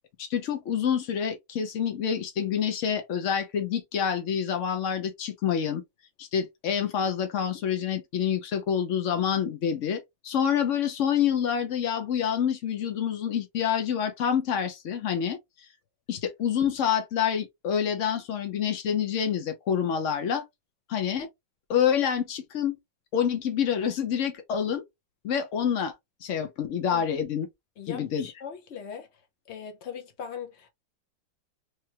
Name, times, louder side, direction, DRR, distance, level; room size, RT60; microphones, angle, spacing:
voice 1, 0.2-5.8 6.2-15.4 16.1-20.4 20.9-21.3 21.7-22.8 23.1-24.8 25.2-25.9 26.2-27.5 27.9-28.3, left 8 dB, 90° left, 0.6 m, -27 dB
voice 2, 27.8-29.1 29.5-30.7, left 7 dB, 55° left, 0.8 m, -40 dB
3.4 x 3.2 x 2.8 m
omnidirectional pair, 2.1 m